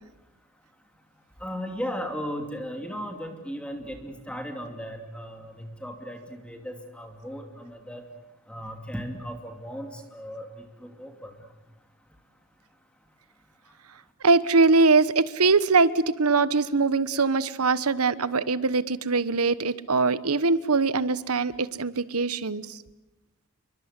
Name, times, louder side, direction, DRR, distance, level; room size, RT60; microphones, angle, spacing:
voice 1, 1.4-8.0 8.5-10.5 10.8-11.3, equal, 5° left, 5 dB, 2.7 m, -36 dB
voice 2, 14.2-22.8, right 4 dB, 90° right, 16 dB, 1.2 m, -22 dB
28.5 x 24.0 x 8.3 m, 0.98 s
head